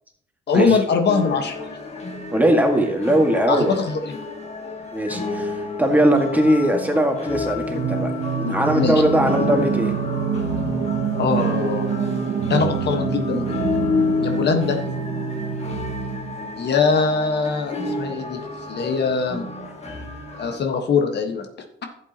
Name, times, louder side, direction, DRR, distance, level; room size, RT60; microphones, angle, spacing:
voice 1, 0.5-1.7 3.5-4.2 8.7-9.0 10.3-10.4 11.2-11.9 12.4-13.6 14.2-14.8 16.6-18.4 18.7-19.4 20.4-21.5, left 5 dB, 60° left, 5 dB, 1.4 m, -22 dB
sound 1, 1.1-20.6, left 3 dB, 35° left, 1.9 m, -30 dB
voice 2, 2.3-3.8 4.9-5.5 5.8-8.1 8.4-9.9, right 1 dB, 10° right, 2 dB, 1.8 m, -19 dB
Singing, 7.7-16.6, right 6 dB, 55° right, 0.8 m, -26 dB
11.5 x 8.1 x 2.9 m, 0.68 s
cardioid pair, 90°, 20 cm